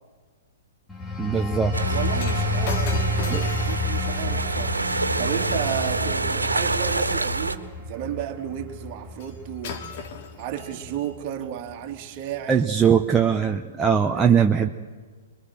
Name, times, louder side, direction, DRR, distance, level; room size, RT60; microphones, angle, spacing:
sound 1, 0.9-11.3 11.7-11.9, left 2 dB, 5° left, 3.1 m, -30 dB
voice 1, 1.2-1.8 3.3-3.4 12.5-14.7, right 7 dB, 10° right, 0.9 m, -20 dB
sound 2, 1.7-7.6, right 3 dB, 85° right, 1.6 m, -27 dB
voice 2, 1.9-4.9 5.2-9.8 10.4-12.7 14.1-14.7, right 10 dB, 35° right, 2.6 m, -33 dB
Shatter, 2.2-6.6 9.2-9.4 9.6-11.1 11.9-12.0, left 5 dB, 45° left, 2.7 m, -39 dB
26.0 x 22.0 x 7.9 m
figure-of-eight pair, 115°, 0 cm